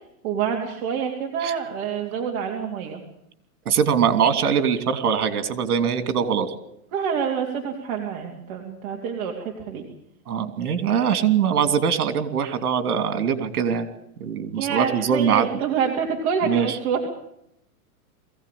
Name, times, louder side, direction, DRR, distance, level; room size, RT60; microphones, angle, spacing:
voice 1, 0.2-3.0 6.9-9.8 14.6-17.1, right 7 dB, 45° right, 0 dB, 3.3 m, -27 dB
voice 2, 3.6-6.5 10.3-13.9 14.2-15.6 16.4-16.8, right 7 dB, 80° right, 9 dB, 3.2 m, -22 dB
22.0 x 16.5 x 8.6 m, 0.78 s
hypercardioid pair, 150°, 44 cm